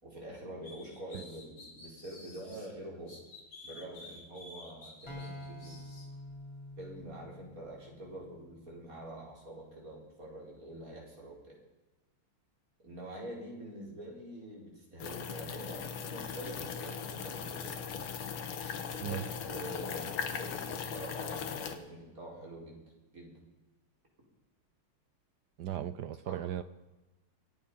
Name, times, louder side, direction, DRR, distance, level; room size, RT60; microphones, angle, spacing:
voice 1, 0.0-3.1 3.6-5.8 6.8-11.6 12.8-17.8 18.9-22.8 23.1-23.3 26.2-26.4, right 1 dB, 40° right, -2 dB, 4.8 m, -46 dB
sound 1, 0.6-2.7 3.1-6.1, left 2 dB, 65° left, 3.7 m, -52 dB
sound 2, 5.1-8.7, left 1 dB, 15° left, 2.5 m, -47 dB
sound 3, 15.0-21.8, left 7 dB, 85° left, 2.1 m, -39 dB
voice 2, 25.6-26.6, right 11 dB, 75° right, 13 dB, 1.0 m, -36 dB
26.0 x 8.7 x 5.6 m, 1.1 s
omnidirectional pair, 2.4 m